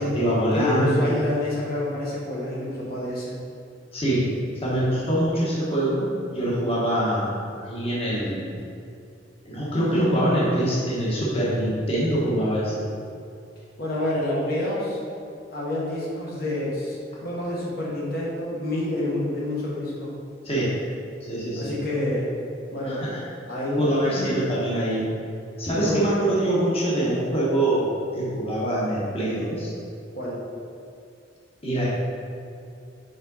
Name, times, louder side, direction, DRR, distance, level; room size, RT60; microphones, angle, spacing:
voice 1, 0.0-1.2 3.9-4.3 4.6-7.3 7.5-8.4 9.4-12.9 20.4-20.7 21.3-21.7 22.8-23.2 23.8-25.0 25.6-29.7 31.6-31.9, right 1 dB, 30° left, -7 dB, 1.2 m, -24 dB
voice 2, 0.5-3.3 13.8-15.0 15.5-17.0 17.2-20.1 21.6-22.3 22.7-23.0 23.5-24.3 25.8-26.1 30.1-30.4, left 1 dB, 55° left, -6 dB, 1.3 m, -28 dB
5.2 x 4.7 x 4.0 m, 2.5 s
head